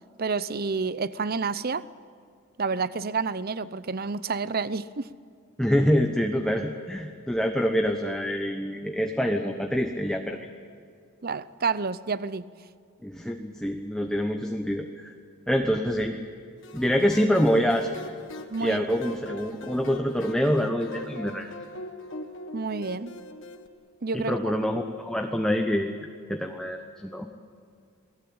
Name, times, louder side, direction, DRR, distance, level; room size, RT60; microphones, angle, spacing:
voice 1, 0.2-1.8 2.6-5.1 11.2-12.5 18.5-18.9 22.5-23.2 24.0-24.5, right 4 dB, 45° right, 16 dB, 0.7 m, -29 dB
voice 2, 5.6-10.4 13.0-15.1 15.5-16.2 16.7-17.9 18.6-21.5 24.1-25.9 26.3-27.3, equal, 5° left, 3 dB, 1.1 m, -26 dB
sound 1, 16.6-23.7, left 1 dB, 55° left, 1.8 m, -42 dB
28.0 x 18.5 x 8.8 m, 2.3 s
head